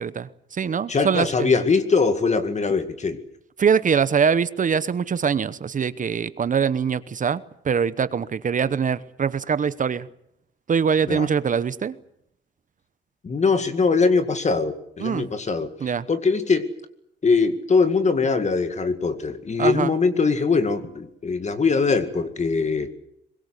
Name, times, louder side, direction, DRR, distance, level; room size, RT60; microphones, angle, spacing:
voice 1, 0.0-1.5 3.6-10.1 10.7-12.0 15.0-15.3 15.8-16.1 19.6-19.9, right 6 dB, 40° right, 16 dB, 1.0 m, -23 dB
voice 2, 0.9-3.2 11.1-11.3 13.2-16.7 17.2-22.9, left 4 dB, 35° left, 10 dB, 2.1 m, -22 dB
23.5 x 21.5 x 8.3 m, 0.78 s
cardioid pair, 90°, 20 cm